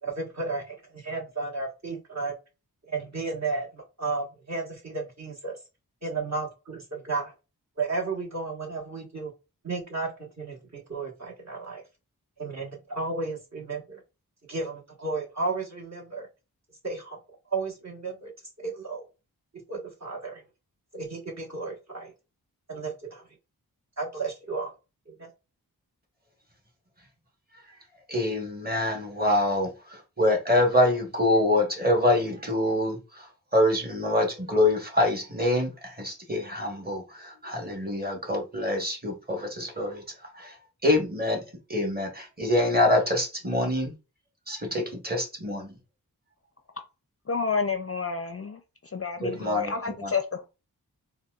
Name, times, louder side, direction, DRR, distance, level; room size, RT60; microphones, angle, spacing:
voice 1, 0.0-2.3 2.9-5.6 6.0-7.3 7.8-9.3 9.6-11.8 12.4-14.0 14.5-16.3 16.8-17.2 17.5-18.3 18.6-19.0 19.7-20.4 20.9-22.1 22.7-23.2 24.0-24.7 25.1-25.3, right 3 dB, 45° right, 1.2 m, -33 dB
voice 2, 28.1-40.0 40.3-40.6 40.8-41.4 41.7-43.9 44.5-45.7 49.2-49.7 50.0-50.1, left 1 dB, 25° right, 1.2 m, -25 dB
voice 3, 47.3-48.6 48.9-50.5, left 5 dB, 40° left, 0.4 m, -29 dB
4.1 x 2.3 x 2.3 m
wide cardioid pair, 50°, 38 cm